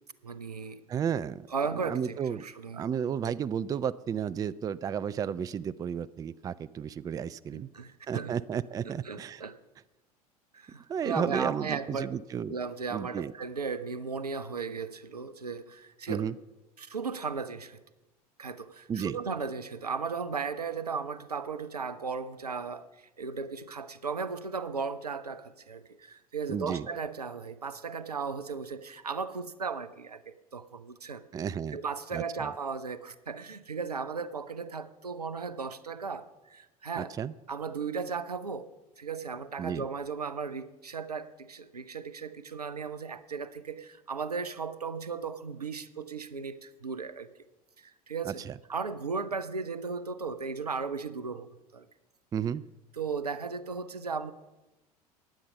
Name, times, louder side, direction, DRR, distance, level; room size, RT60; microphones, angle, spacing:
voice 1, 0.2-0.8 1.5-2.9 7.5-8.3 8.8-9.6 10.5-12.1 12.5-16.2 16.8-17.8 18.4-37.1 37.5-38.7 39.0-47.3 47.8-48.4 48.7-51.9 53.0-54.3, right 5 dB, 85° right, 14 dB, 0.7 m, -36 dB
voice 2, 0.9-1.5 1.7-2.4 2.7-7.7 8.1-9.4 10.9-12.6 12.9-13.3 16.1-16.4 18.9-19.2 26.5-26.9 31.3-31.8 32.1-32.5 37.0-37.3 39.6-39.9 48.2-48.6 52.3-52.6, right 8 dB, 20° right, 17 dB, 0.4 m, -33 dB
15.0 x 10.0 x 5.4 m, 1.0 s
figure-of-eight pair, 70°, 19 cm